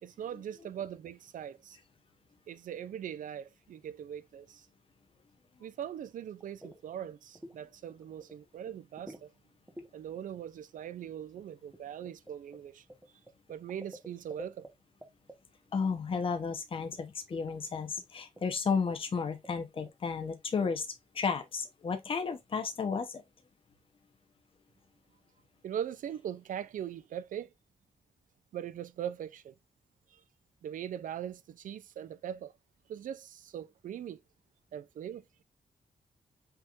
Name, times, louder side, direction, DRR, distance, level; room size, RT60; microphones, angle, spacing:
voice 1, 0.0-1.8 2.5-4.7 5.6-9.3 9.9-12.8 13.5-14.6 25.6-27.5 28.5-29.5 30.1-30.2 30.6-32.5 32.9-34.2 34.7-35.2, right 9 dB, 75° right, 0.5 m, -41 dB
sound 1, 6.4-6.8 7.1-7.6 7.9-8.4 8.7-9.3 9.7-9.9 11.4-14.7 15.0-15.4 16.9-17.0 17.3-17.5 18.0-18.1 18.4-18.5 18.7-19.0 19.4-19.9, right 1 dB, 10° right, 1.1 m, -49 dB
voice 2, 15.7-20.9 21.1-23.2, left 5 dB, 40° left, 1.0 m, -33 dB
5.8 x 3.5 x 2.5 m
wide cardioid pair, 145°, 14 cm